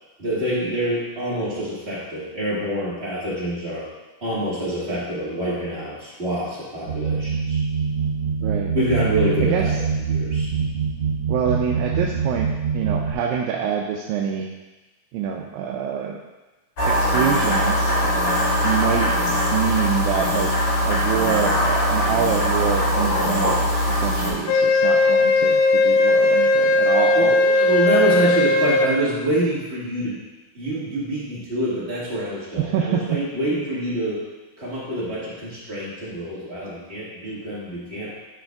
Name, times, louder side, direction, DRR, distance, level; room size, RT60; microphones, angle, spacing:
voice 1, 0.2-3.9 4.2-7.6 8.7-9.8 10.1-10.5 27.1-30.2 30.5-34.2 34.6-38.1, right 1 dB, 30° right, -9 dB, 1.2 m, -26 dB
sound 1, 6.9-13.1, right 5 dB, 65° right, 1.5 m, -24 dB
voice 2, 9.4-9.8 11.3-14.5 15.1-16.2 16.8-17.9 18.6-19.1 19.5-20.5 20.8-27.4 27.9-28.2 32.6-33.2, right 8 dB, 85° right, 0 dB, 2.3 m, -26 dB
sound 2, 16.8-24.3, equal, 35° left, 2.3 m, -21 dB
Wind instrument woodwind instrument, 24.5-28.9, left 2 dB, 85° left, 2.4 m, -17 dB
11.5 x 5.5 x 2.3 m, 1.1 s
omnidirectional pair, 4.1 m